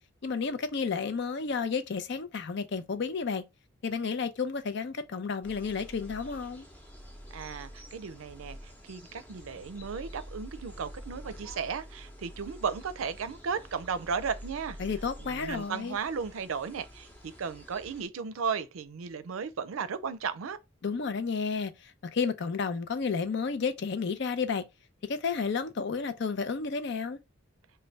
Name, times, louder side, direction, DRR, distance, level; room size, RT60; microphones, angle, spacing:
voice 1, 0.2-3.4 3.8-6.7 14.8-16.0 20.8-24.6 25.1-27.2, left 5 dB, 60° left, 0.5 m, -31 dB
sound 1, 5.4-18.1, equal, 10° left, 0.8 m, -47 dB
voice 2, 7.3-14.8 15.2-17.1 17.4-20.6, right 6 dB, 90° right, 0.5 m, -35 dB
3.3 x 2.2 x 3.9 m
head